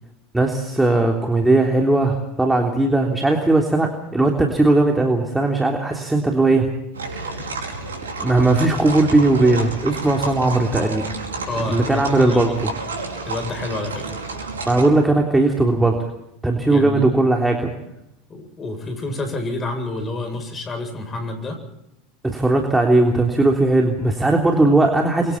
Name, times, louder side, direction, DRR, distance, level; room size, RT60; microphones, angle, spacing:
voice 1, 0.3-6.7 7.1-7.3 8.2-11.0 11.7-12.5 14.6-16.1 16.4-17.7 22.2-25.4, right 2 dB, 10° right, 1 dB, 3.4 m, -18 dB
sound 1, 6.9-14.9, right 3 dB, 85° right, 4.8 m, -30 dB
voice 2, 11.5-12.4 13.2-14.0 16.7-17.1 18.3-21.6, left 2 dB, 25° left, 7 dB, 8.0 m, -28 dB
29.0 x 24.5 x 4.4 m, 0.85 s
hypercardioid pair, 85°, 0 cm